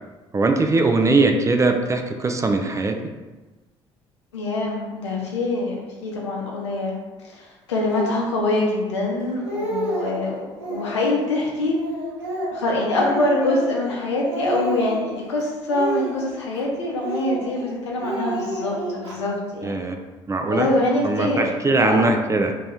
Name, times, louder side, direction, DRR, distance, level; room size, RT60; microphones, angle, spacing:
voice 1, 0.3-3.0 19.6-20.0 20.3-20.7 21.0-22.5, right 3 dB, 20° right, 5 dB, 0.4 m, -20 dB
voice 2, 4.3-5.7 6.0-6.9 7.2-11.7 12.5-19.7 20.5-21.4 21.8-22.1, left 2 dB, 80° left, -2 dB, 0.7 m, -24 dB
Speech, 7.8-8.2 8.9-9.0 9.3-10.2 10.6-11.2 11.7-14.0 14.2-15.2 15.7-16.6 17.0-17.7 18.0-19.2, right 1 dB, 85° right, 0.8 m, -29 dB
2.9 x 2.9 x 3.6 m, 1.2 s
figure-of-eight pair, 55°, 15 cm